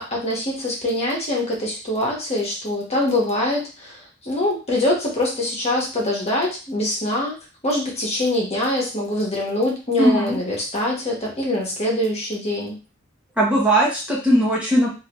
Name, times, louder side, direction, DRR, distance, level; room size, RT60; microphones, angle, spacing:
voice 1, 0.0-7.3 7.6-12.8, left 1 dB, 30° left, -3 dB, 1.3 m, -24 dB
voice 2, 10.0-10.4 13.4-14.9, equal, 5° right, -5 dB, 0.9 m, -18 dB
3.8 x 2.8 x 3.0 m, 0.32 s
head